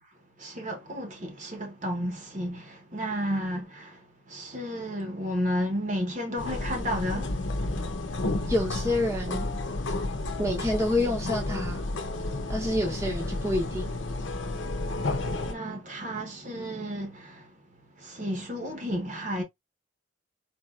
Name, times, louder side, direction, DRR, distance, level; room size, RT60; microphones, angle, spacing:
voice 1, 0.4-4.0 4.3-7.3 13.5-13.6 14.1-14.2 15.4-17.4 18.0-19.4, equal, 40° right, 1.0 m, -32 dB
sound 1, 6.4-15.5, left 2 dB, 75° left, 0.8 m, -31 dB
voice 2, 8.5-9.5 10.4-11.8 12.5-13.9, left 1 dB, 15° right, 0.8 m, -28 dB
4.4 x 2.9 x 2.4 m
head